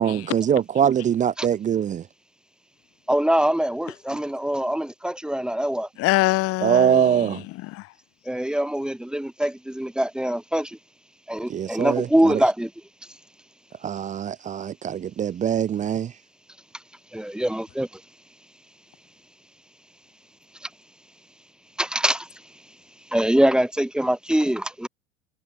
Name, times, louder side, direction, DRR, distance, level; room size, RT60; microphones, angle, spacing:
voice 1, 0.0-2.0 6.6-7.4 11.5-12.4 13.8-16.1, right 9 dB, 25° right, 0.8 m, -23 dB
voice 2, 3.1-5.9 8.3-10.7 11.3-12.7 17.1-17.9 21.8-22.2 23.1-24.9, right 1 dB, ahead, 1.5 m, -23 dB
voice 3, 6.0-7.9, left 20 dB, 45° left, 4.2 m, -25 dB
figure-of-eight pair, 80°, 32 cm